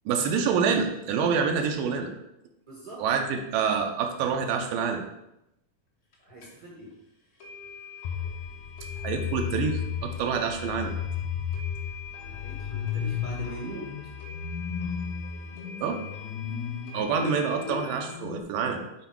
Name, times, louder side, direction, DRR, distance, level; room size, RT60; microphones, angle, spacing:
voice 1, 0.1-2.1 3.0-5.0 9.0-11.0 15.8-16.0 16.9-18.8, right 6 dB, 80° right, 3 dB, 2.3 m, -27 dB
voice 2, 2.6-3.0 3.3-3.4 6.2-6.9 12.2-13.9, right 2 dB, 65° right, -4 dB, 0.9 m, -42 dB
sound 1, 6.1-6.2 6.4-6.5 6.9-7.0 7.4-18.1, left 5 dB, 70° left, 0.9 m, -45 dB
sound 2, 8.0-18.4, left 8 dB, 90° left, 1.7 m, -34 dB
8.0 x 4.0 x 4.6 m, 0.86 s
omnidirectional pair, 4.0 m